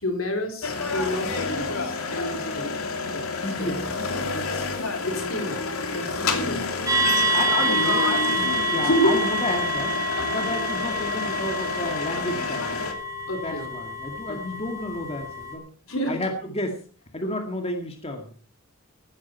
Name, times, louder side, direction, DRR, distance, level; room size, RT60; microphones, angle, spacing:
voice 1, 0.0-3.2 3.6-3.7 5.0-5.6 5.9-6.7 8.8-9.2 10.1-10.4 13.3-13.7 14.3-14.4 15.9-16.2, equal, 65° left, 3 dB, 4.0 m, -28 dB
sound 1, 0.6-12.9, left 4 dB, 85° left, 2.7 m, -29 dB
voice 2, 3.0-3.8 4.3-4.6 7.3-10.0 10.2-12.8 13.4-15.6 16.1-16.8 17.1-18.3, left 1 dB, 30° left, 3 dB, 2.2 m, -31 dB
sound 2, 6.9-15.6, right 1 dB, 15° right, 3.2 m, -27 dB
16.0 x 13.0 x 4.5 m, 0.40 s
head